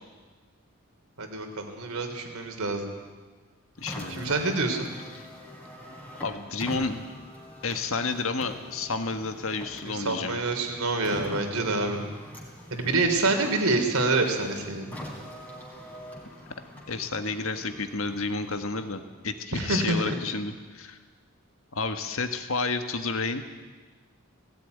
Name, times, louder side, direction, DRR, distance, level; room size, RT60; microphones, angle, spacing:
voice 1, 1.2-2.9 4.1-4.9 9.8-12.1 12.7-14.9 19.5-20.0, right 3 dB, 85° right, 4 dB, 3.4 m, -27 dB
Car, 3.7-19.2, equal, 5° left, 3.4 m, -44 dB
voice 2, 3.8-4.3 6.2-7.0 7.6-10.4 16.9-21.0 21.7-23.4, left 3 dB, 75° left, 7 dB, 1.6 m, -31 dB
17.5 x 17.0 x 9.5 m, 1.4 s
head